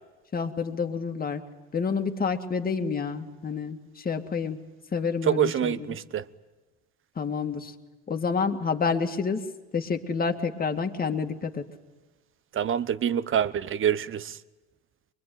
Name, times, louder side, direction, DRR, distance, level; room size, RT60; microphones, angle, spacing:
voice 1, 0.3-1.4 1.7-4.6 4.9-5.9 7.2-7.7 8.1-9.4 9.7-11.6, left 5 dB, 30° left, 2.2 m, -28 dB
voice 2, 5.3-6.2 12.6-14.2, right 9 dB, 40° right, 1.1 m, -25 dB
24.0 x 22.5 x 9.4 m
supercardioid pair, 85°, 31 cm